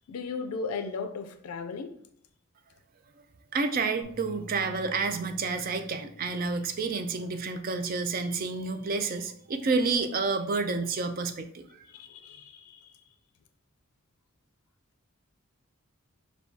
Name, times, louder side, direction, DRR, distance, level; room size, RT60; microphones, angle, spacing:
voice 1, 0.1-1.9 11.9-13.0, left 4 dB, 85° left, 8 dB, 0.4 m, -36 dB
voice 2, 3.5-11.9, right 4 dB, 40° right, 8 dB, 0.3 m, -29 dB
sound 1, 4.0-10.3, left 1 dB, 55° right, 1.0 m, -52 dB
6.7 x 2.3 x 2.6 m, 0.66 s
head